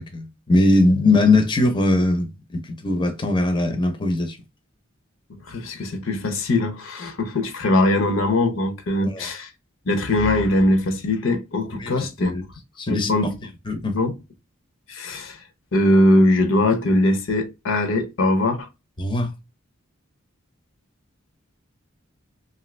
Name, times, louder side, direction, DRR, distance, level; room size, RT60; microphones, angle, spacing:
voice 1, 0.0-4.4 9.0-9.3 11.8-12.4 12.8-13.3 13.7-14.0 19.0-19.3, left 2 dB, 25° left, 0.5 m, -21 dB
voice 2, 5.5-9.5 9.9-12.4 12.9-13.4 13.9-14.1 14.9-15.4 15.7-18.7, left 1 dB, 70° left, 0.6 m, -21 dB
2.7 x 2.5 x 3.1 m
head